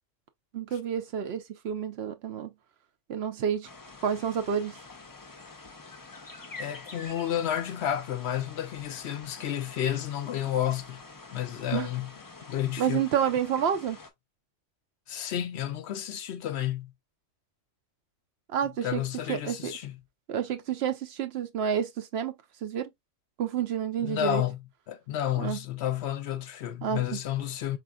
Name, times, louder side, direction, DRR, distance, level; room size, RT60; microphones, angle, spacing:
voice 1, 0.5-2.5 3.1-3.7 4.0-4.8 11.7-11.9 12.8-14.0 18.5-19.0 19.3-19.7 20.3-22.3 22.6-22.9 23.4-24.4 25.4-25.6 26.8-27.2, right 8 dB, 65° right, 0.8 m, -29 dB
sound 1, 3.6-14.1, left 3 dB, 25° left, 0.4 m, -47 dB
voice 2, 6.6-11.0 11.3-12.1 12.5-13.0 15.1-16.9 18.8-20.0 24.0-24.6 24.9-27.8, left 11 dB, 70° left, 0.8 m, -31 dB
4.4 x 3.4 x 2.3 m
omnidirectional pair, 1.2 m